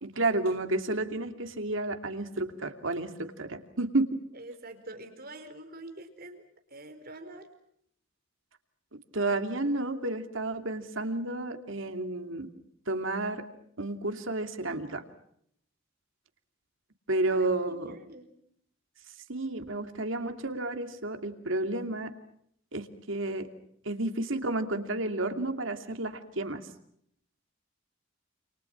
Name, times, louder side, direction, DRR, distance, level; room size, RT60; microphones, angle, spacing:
voice 1, 0.0-4.1 9.1-12.5 12.9-13.4 13.8-15.0 17.1-18.0 19.3-22.1 22.7-23.5 23.8-26.6, right 2 dB, 75° right, 7 dB, 2.8 m, -31 dB
voice 2, 4.3-6.4 6.7-7.5 17.3-18.3, right 2 dB, 50° right, 7 dB, 4.5 m, -45 dB
29.0 x 28.5 x 6.1 m, 0.70 s
head